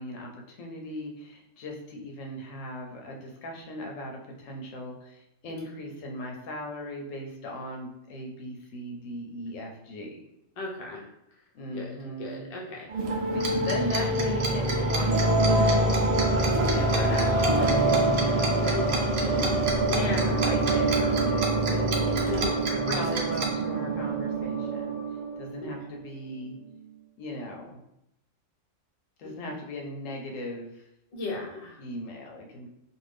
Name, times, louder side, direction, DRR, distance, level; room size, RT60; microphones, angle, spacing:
voice 1, 0.0-10.1 11.5-12.5 13.3-16.1 16.6-18.9 19.2-19.5 20.1-21.4 21.7-25.0 25.4-26.6 27.2-27.8 29.2-30.8 31.8-32.7, left 1 dB, 85° left, 1 dB, 1.0 m, -38 dB
voice 2, 10.6-11.0 11.7-12.9 13.6-13.7 18.7-18.8 19.8-20.4 22.3-22.5 22.9-23.2 25.6-25.7 31.1-31.8, left 3 dB, 45° left, -2 dB, 0.5 m, -36 dB
sound 1, 12.9-25.8, right 2 dB, 60° right, 0.4 m, -25 dB
Tick-tock, 13.4-23.5, right 3 dB, 80° right, 1.0 m, -32 dB
2.6 x 2.3 x 3.3 m, 0.81 s
omnidirectional pair, 1.3 m